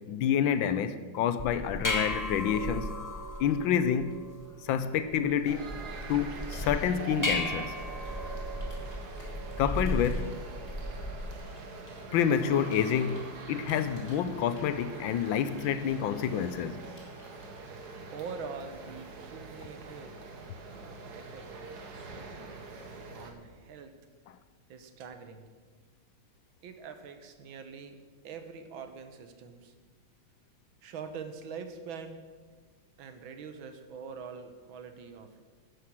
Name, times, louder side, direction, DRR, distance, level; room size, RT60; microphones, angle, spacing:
voice 1, 0.1-2.9 3.4-4.2 4.6-5.7 6.1-7.7 9.6-10.3 12.1-16.8, left 8 dB, 75° left, 13 dB, 1.3 m, -28 dB
sound 1, 1.4-11.4, left 1 dB, 20° left, 0.4 m, -36 dB
sound 2, 5.4-23.3, right 3 dB, 50° right, 1.7 m, -44 dB
Computer keyboard, 8.0-18.1, left 1 dB, 40° left, 3.2 m, -57 dB
voice 2, 18.1-20.2 20.7-21.5 21.7-22.6 23.1-24.0 24.7-25.5 26.6-28.0 28.2-29.7 30.8-32.2 33.0-35.4, right 5 dB, 70° right, 8 dB, 1.8 m, -44 dB
12.0 x 10.5 x 6.2 m, 1.4 s
omnidirectional pair, 2.3 m